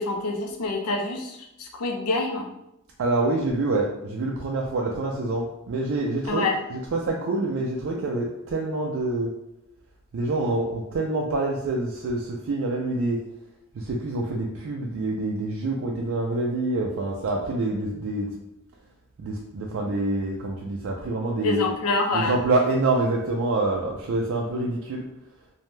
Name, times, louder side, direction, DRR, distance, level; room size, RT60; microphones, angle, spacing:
voice 1, 0.0-2.4 6.3-6.6 21.4-22.4, left 3 dB, 80° left, 3 dB, 0.5 m, -26 dB
voice 2, 3.0-9.3 10.1-13.2 13.7-18.3 19.2-21.7 22.1-25.0, right 2 dB, 65° right, -1 dB, 0.3 m, -26 dB
2.6 x 2.1 x 3.1 m, 0.85 s
head